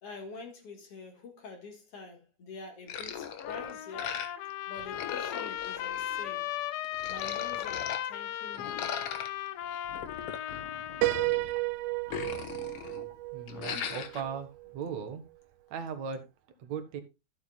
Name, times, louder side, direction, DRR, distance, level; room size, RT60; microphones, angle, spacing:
voice 1, 0.0-4.3 4.7-6.5 7.1-8.9, left 3 dB, 50° left, 2.2 m, -46 dB
sound 1, 2.9-4.5 4.8-6.4 6.8-8.0 8.5-11.6 11.9-13.1 13.5-14.2, left 8 dB, 70° left, 1.4 m, -39 dB
Trumpet, 3.4-11.3, left 12 dB, 85° left, 2.7 m, -37 dB
Piano, 11.0-14.8, right 20 dB, 90° right, 1.7 m, -33 dB
voice 2, 12.3-12.9 13.3-15.2 15.7-16.2 16.6-17.0, right 6 dB, 60° right, 2.1 m, -38 dB
14.0 x 8.2 x 2.3 m
omnidirectional pair, 4.2 m